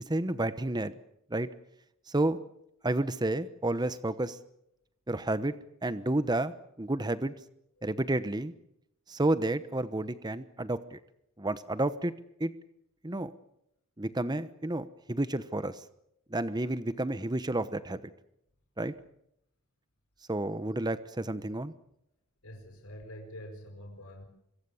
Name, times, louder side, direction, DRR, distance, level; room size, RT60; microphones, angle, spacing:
voice 1, 0.1-1.0 1.3-1.5 2.1-2.4 2.8-4.4 5.1-5.5 5.8-7.3 7.8-8.5 9.1-11.0 11.4-12.1 12.4-12.5 13.0-13.3 14.0-15.8 16.3-18.0 18.8-18.9 20.3-21.7, right 1 dB, 20° right, 13 dB, 1.0 m, -30 dB
voice 2, 22.4-24.3, equal, 75° left, 3 dB, 4.7 m, -46 dB
25.0 x 23.0 x 7.1 m, 0.79 s
head